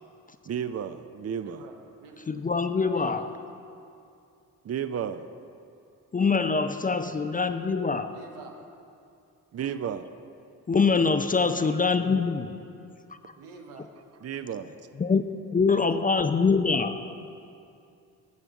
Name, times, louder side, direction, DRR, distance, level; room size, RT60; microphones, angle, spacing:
voice 1, 0.4-1.6 4.6-5.3 9.5-10.1 11.6-11.8 14.2-14.8, right 8 dB, 35° right, 0.5 m, -33 dB
voice 2, 1.4-2.3 2.9-3.3 8.1-8.6 13.4-13.9, right 4 dB, 90° right, 0.9 m, -46 dB
voice 3, 2.3-3.3 6.1-8.1 10.7-12.5 15.0-17.0, left 4 dB, 20° left, 0.4 m, -24 dB
13.5 x 7.0 x 3.6 m
hypercardioid pair, 40°, 44 cm